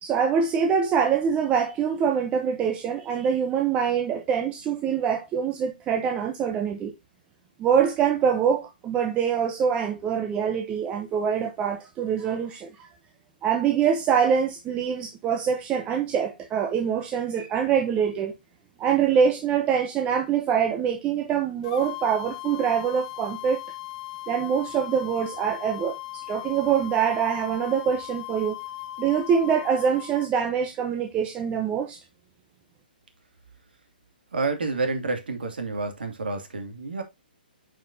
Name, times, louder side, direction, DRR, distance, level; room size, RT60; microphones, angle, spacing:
voice 1, 0.0-6.9 7.6-12.7 13.4-18.3 18.8-23.6 24.3-28.6 29.0-32.0, right 7 dB, 20° right, 0.9 m, -24 dB
sound 1, 21.6-30.3, left 16 dB, 45° left, 1.1 m, -38 dB
voice 2, 34.3-37.0, right 3 dB, 75° right, 2.6 m, -29 dB
9.1 x 5.3 x 2.8 m
hypercardioid pair, 130°, 5 cm